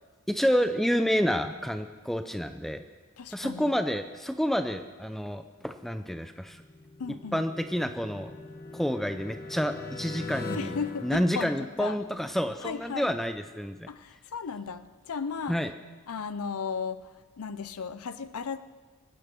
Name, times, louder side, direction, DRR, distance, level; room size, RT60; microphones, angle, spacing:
voice 1, 0.3-2.8 3.3-6.6 7.3-8.3 8.7-10.7 11.0-13.9 15.5-15.7, equal, ahead, 8 dB, 0.4 m, -29 dB
voice 2, 3.2-3.7 7.0-7.4 10.6-12.0 12.6-13.2 13.9-15.7 16.1-18.6, left 5 dB, 85° left, 12 dB, 0.6 m, -35 dB
sound 1, 6.5-12.3, left 3 dB, 45° left, 1.1 m, -41 dB
24.0 x 9.4 x 6.1 m, 1.4 s
head